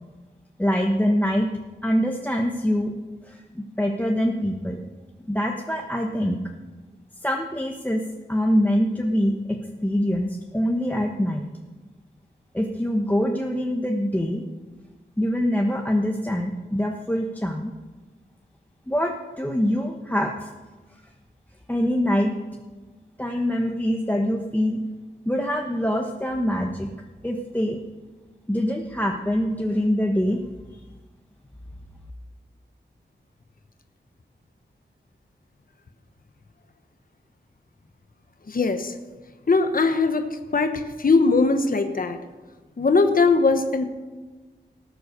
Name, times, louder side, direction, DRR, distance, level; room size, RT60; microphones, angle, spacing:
voice 1, 0.6-1.5 1.8-2.9 3.2-4.8 5.3-6.4 7.2-11.5 12.5-14.5 15.2-17.7 18.9-20.5 21.7-22.4 23.2-24.8 25.2-26.9 27.2-27.8 28.5-30.4 30.7-30.8, equal, 10° left, 1 dB, 1.1 m, -24 dB
voice 2, 38.5-38.9 39.5-40.3 40.5-42.2 42.8-43.8, left 3 dB, 50° left, 7 dB, 1.1 m, -20 dB
18.5 x 7.8 x 6.7 m, 1.3 s
wide cardioid pair, 95°, 19 cm